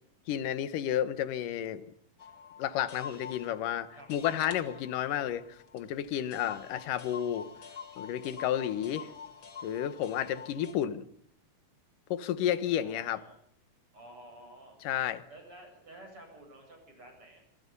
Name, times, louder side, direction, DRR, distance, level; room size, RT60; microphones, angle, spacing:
voice 1, 0.3-1.8 2.6-7.5 8.0-9.1 9.6-11.1 12.1-13.2 14.8-15.2, left 10 dB, 70° left, 13 dB, 2.8 m, -31 dB
sound 1, 2.2-10.7, left 6 dB, 40° left, 2.3 m, -46 dB
voice 2, 8.6-9.2 12.5-13.4 13.9-14.7 15.3-17.4, right 1 dB, 35° right, 3 dB, 8.9 m, -52 dB
26.0 x 25.0 x 5.5 m, 0.67 s
omnidirectional pair, 4.0 m